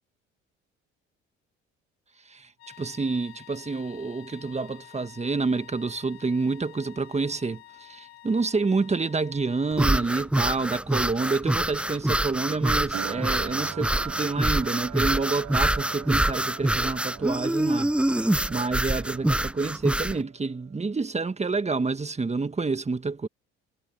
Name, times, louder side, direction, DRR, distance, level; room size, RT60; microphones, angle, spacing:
sound 1, 2.6-10.5, left 17 dB, 85° left, 2.5 m, -50 dB
voice 1, 2.8-17.9 18.5-23.3, right 4 dB, 20° right, 1.7 m, -28 dB
sound 2, 9.7-20.2, right 1 dB, 5° right, 0.5 m, -26 dB
sound 3, 12.9-19.7 20.0-20.9, right 14 dB, 65° right, 6.7 m, -42 dB
hypercardioid pair, 60°, 30 cm